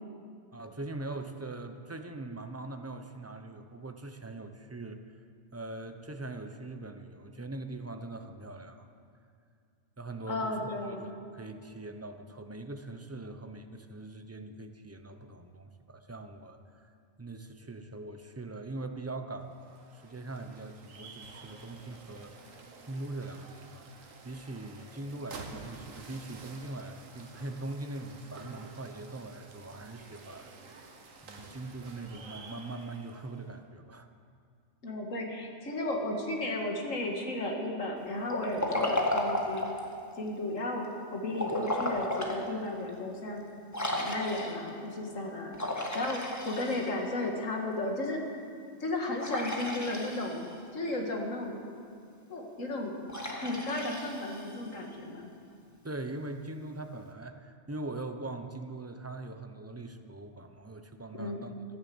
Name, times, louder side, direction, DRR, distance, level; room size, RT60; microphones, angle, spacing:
voice 1, 0.5-5.0 5.5-8.9 10.0-11.1 11.3-16.6 16.8-16.9 17.2-22.6 22.9-23.9 24.2-30.5 31.2-34.1 55.8-61.5, right 2 dB, 15° right, 7 dB, 0.6 m, -41 dB
voice 2, 10.3-11.1 34.8-39.7 40.2-43.4 43.9-45.6 45.9-48.2 48.8-51.5 52.3-52.9 53.4-55.3 61.1-61.4, left 2 dB, 80° left, 1 dB, 2.3 m, -34 dB
sound 1, 19.4-33.5, right 4 dB, 90° right, 1.6 m, -50 dB
Liquid, 38.3-39.9 41.3-42.4 42.9-43.0 43.7-44.7 45.5-47.2 49.2-50.5 53.1-54.7, left 1 dB, 15° left, 1.7 m, -33 dB
14.5 x 10.5 x 7.8 m, 2.3 s
omnidirectional pair, 1.3 m